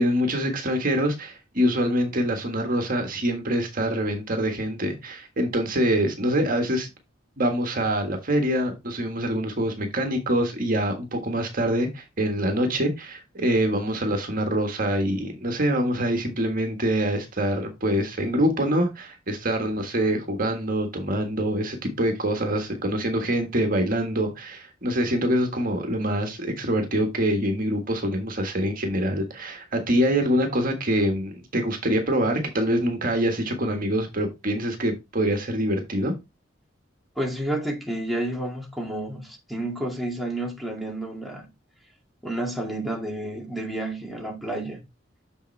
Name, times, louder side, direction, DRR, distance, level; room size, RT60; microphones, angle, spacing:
voice 1, 0.0-6.9 7.4-36.1, equal, 45° right, 1.5 m, -25 dB
voice 2, 37.2-41.5 42.2-44.8, right 1 dB, ahead, 2.0 m, -30 dB
6.9 x 6.6 x 3.3 m
head